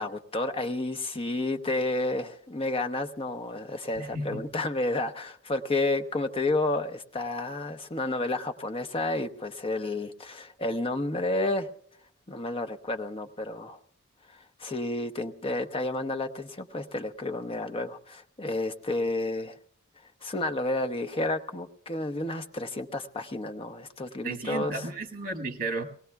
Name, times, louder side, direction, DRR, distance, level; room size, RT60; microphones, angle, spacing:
voice 1, 0.0-11.7 12.3-13.8 14.6-19.6 20.2-24.8, left 2 dB, 25° left, 6 dB, 0.8 m, -31 dB
voice 2, 3.9-4.5 24.2-25.8, right 2 dB, 45° right, 5 dB, 1.7 m, -33 dB
24.5 x 18.5 x 2.3 m, 0.62 s
head